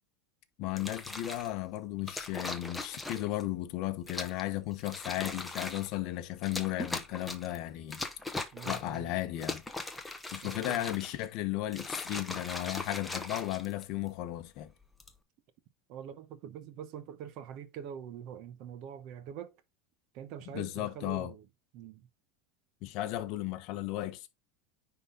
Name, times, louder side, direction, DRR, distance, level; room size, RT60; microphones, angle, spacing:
voice 1, 0.6-8.0 8.6-9.6 10.3-14.7 20.5-21.3 22.8-24.3, left 15 dB, 45° left, 1.0 m, -35 dB
sound 1, 0.7-1.5 2.1-3.4 4.1-4.4 4.8-5.9 6.4-7.6 7.9-9.0 9.3-11.3 11.7-14.1 14.8-15.2, left 2 dB, 5° left, 0.8 m, -39 dB
voice 2, 8.5-9.2 10.4-10.8 15.9-19.6 20.1-21.4 21.7-22.1, right 9 dB, 45° right, 0.9 m, -44 dB
9.8 x 3.8 x 3.8 m
supercardioid pair, 170°, 0 cm